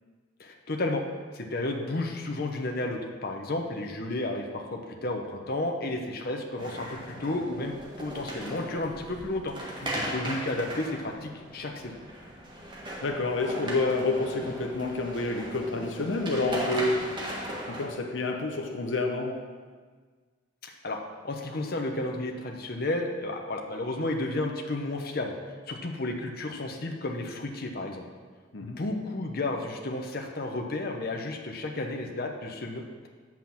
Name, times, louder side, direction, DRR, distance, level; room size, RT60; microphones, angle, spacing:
voice 1, 0.4-1.0 1.3-9.5 9.9-11.9 20.6-25.3 25.7-28.0 28.6-33.1, left 2 dB, 55° left, 2 dB, 0.9 m, -32 dB
sound 1, 6.6-17.9, right 1 dB, 25° right, 1.6 m, -38 dB
voice 2, 9.8-10.3 13.0-17.2 17.7-19.4 28.5-28.8, left 2 dB, 80° left, 3 dB, 0.9 m, -29 dB
8.2 x 6.0 x 7.2 m, 1.5 s
head